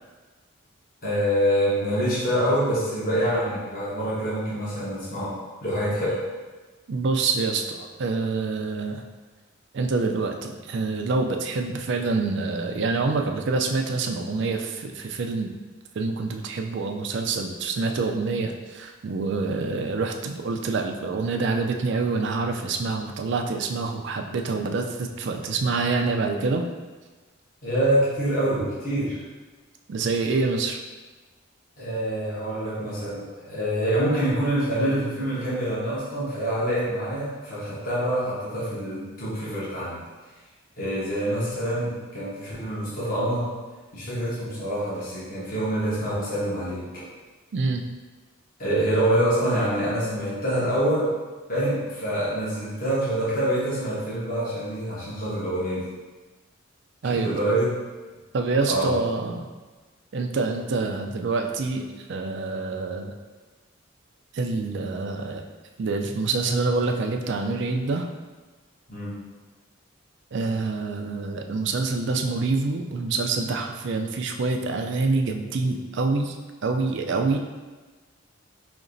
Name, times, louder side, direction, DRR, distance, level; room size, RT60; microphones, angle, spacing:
voice 1, 1.0-6.2 27.6-29.2 31.8-40.0 40.8-43.5 43.9-47.0 48.6-51.1 51.5-55.9 57.1-57.7 58.7-58.9 68.9-69.2, right 1 dB, 45° left, -9 dB, 1.0 m, -26 dB
voice 2, 6.9-9.0 9.7-15.5 16.0-26.6 29.9-30.8 47.5-47.8 57.0-57.4 58.3-59.5 60.1-63.1 64.3-65.5 65.8-68.1 70.3-76.4 76.6-77.4, right 3 dB, 55° right, 4 dB, 0.4 m, -26 dB
5.1 x 2.9 x 2.6 m, 1.3 s
head